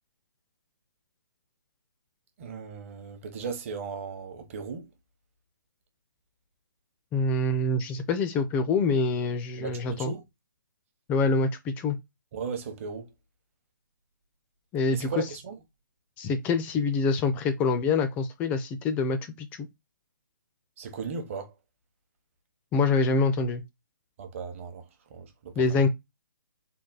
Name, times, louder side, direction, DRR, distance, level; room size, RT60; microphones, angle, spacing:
voice 1, 2.4-4.9 9.6-10.2 12.3-13.1 14.9-15.6 20.8-21.5 24.2-25.8, right 5 dB, 40° right, 0.8 m, -37 dB
voice 2, 7.1-10.2 11.1-12.0 14.7-15.1 16.2-19.7 22.7-23.6 25.6-25.9, left 3 dB, 15° left, 0.3 m, -25 dB
3.8 x 2.1 x 3.8 m
figure-of-eight pair, 140°, 11 cm